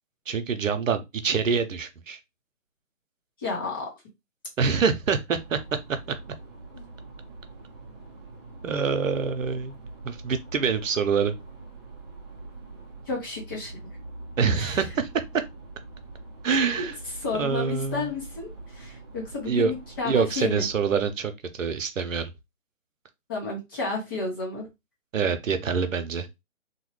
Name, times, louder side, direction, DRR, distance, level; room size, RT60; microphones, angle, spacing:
voice 1, 0.3-2.2 4.6-5.6 8.6-9.8 10.0-11.3 14.4-15.1 16.4-16.9 17.3-18.1 19.5-19.7 20.0-22.3 25.1-26.3, right 5 dB, 70° right, 0.7 m, -25 dB
voice 2, 3.4-3.9 6.7-6.8 13.1-13.7 14.6-14.8 16.8-16.9 17.2-20.6 23.3-24.7, left 3 dB, 15° left, 0.6 m, -32 dB
sound 1, 5.3-21.1, right 2 dB, 20° right, 0.7 m, -44 dB
3.0 x 2.1 x 3.1 m
figure-of-eight pair, 145°, 40 cm